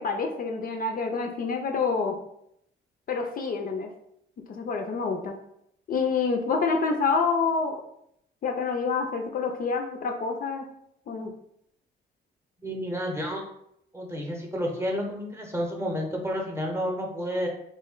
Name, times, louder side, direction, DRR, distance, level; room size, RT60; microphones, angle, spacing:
voice 1, 0.0-2.2 3.1-3.9 4.5-5.4 5.9-7.8 8.4-10.7 11.1-11.3, left 4 dB, 45° left, 3 dB, 0.4 m, -27 dB
voice 2, 12.6-13.4 13.9-17.5, equal, 15° right, 0 dB, 0.7 m, -30 dB
2.8 x 2.1 x 3.7 m, 0.75 s
cardioid pair, 90°, 20 cm